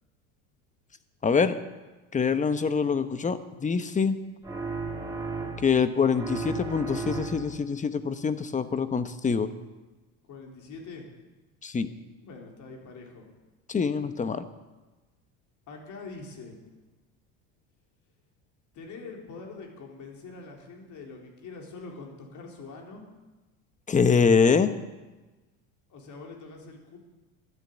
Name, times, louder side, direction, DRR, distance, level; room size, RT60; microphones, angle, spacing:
voice 1, 1.2-1.6 2.1-4.2 5.6-9.5 11.6-11.9 13.7-14.5 23.9-24.7, left 5 dB, 20° left, 11 dB, 1.0 m, -24 dB
sound 1, 4.4-5.8 6.1-7.7, right 4 dB, 10° right, 2.7 m, -34 dB
voice 2, 10.2-11.1 12.2-13.3 15.7-16.6 18.7-23.1 25.9-27.0, left 3 dB, 50° left, 1 dB, 4.0 m, -44 dB
12.0 x 10.5 x 8.5 m, 1.2 s
supercardioid pair, 105°, 37 cm